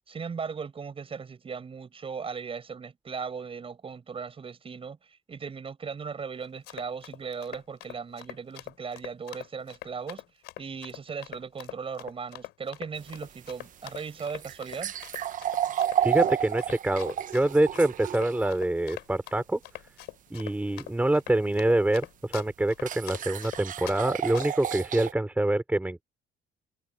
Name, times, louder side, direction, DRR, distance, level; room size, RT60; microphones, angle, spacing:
voice 1, 0.1-5.0 5.3-10.2 10.6-14.9, right 5 dB, 35° right, 6.5 m, -37 dB
Run, 6.4-24.0 24.3-24.7, left 18 dB, 90° left, 4.7 m, -43 dB
sound 1, 12.9-18.5 21.6-21.7 22.8-25.1, right 10 dB, 50° right, 1.0 m, -31 dB
voice 2, 16.0-19.6 20.3-26.0, right 1 dB, 10° right, 4.8 m, -26 dB
cardioid pair, 110°, 17 cm